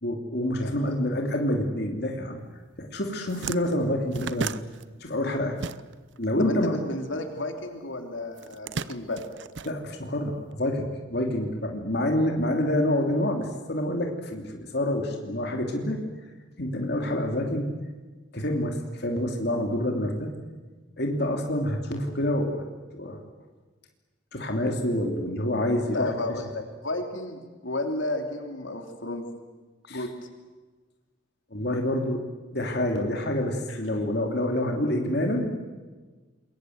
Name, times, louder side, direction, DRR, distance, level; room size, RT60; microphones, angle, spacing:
voice 1, 0.0-2.4 2.8-4.5 5.0-5.6 6.2-6.8 9.6-16.0 16.6-17.7 18.3-20.3 21.0-22.6 22.9-23.2 24.3-26.1 29.9-30.0 31.5-32.2 32.5-35.5, left 1 dB, 55° left, 2 dB, 3.1 m, -27 dB
sound 1, 2.7-2.8 3.1-6.2 6.5-7.7 8.3-10.4, right 5 dB, 65° right, 0.7 m, -36 dB
voice 2, 6.4-9.2 25.9-29.2 29.9-30.1 33.7-33.8, left 2 dB, 75° left, 5 dB, 3.2 m, -32 dB
28.0 x 22.0 x 8.0 m, 1.3 s
head